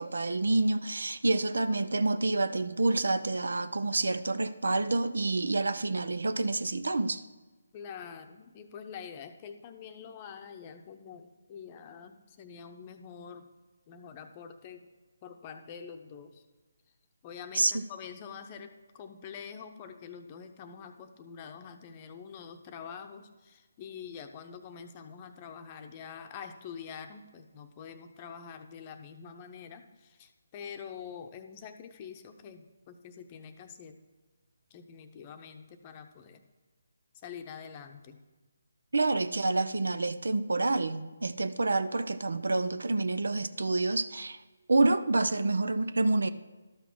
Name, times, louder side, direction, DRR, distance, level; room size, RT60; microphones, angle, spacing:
voice 1, 0.0-7.2 17.5-17.8 38.9-44.4 44.7-46.3, right 2 dB, 80° right, 0.6 m, -28 dB
voice 2, 7.7-13.5 13.9-14.9 15.2-16.4 17.2-34.0 34.7-36.4 37.2-38.2, left 7 dB, 25° left, 0.8 m, -46 dB
12.0 x 6.0 x 6.2 m
figure-of-eight pair, 160°, 0 cm